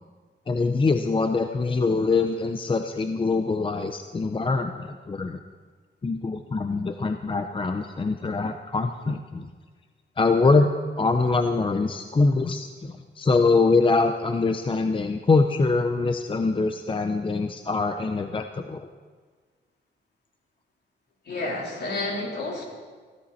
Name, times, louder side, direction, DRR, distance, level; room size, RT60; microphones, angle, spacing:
voice 1, 0.5-5.4 6.0-9.5 10.2-10.7 11.0-18.9, left 3 dB, 25° left, 7 dB, 0.7 m, -24 dB
voice 2, 21.3-22.6, left 2 dB, 60° left, -3 dB, 4.0 m, -30 dB
16.0 x 14.0 x 4.3 m, 1.5 s
cardioid pair, 95°, 20 cm